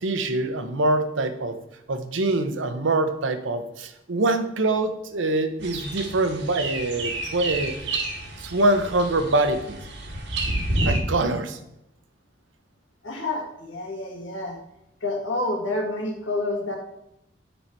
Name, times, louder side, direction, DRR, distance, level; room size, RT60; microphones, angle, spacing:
voice 1, 0.0-1.6 1.9-7.7 8.4-9.8 10.8-11.6, right 2 dB, 90° right, 9 dB, 0.8 m, -24 dB
sound 1, 5.6-11.0, right 2 dB, 75° right, 1.4 m, -29 dB
voice 2, 13.0-14.6 15.0-16.8, left 2 dB, 85° left, 1 dB, 1.8 m, -28 dB
7.0 x 5.6 x 4.5 m, 0.83 s
head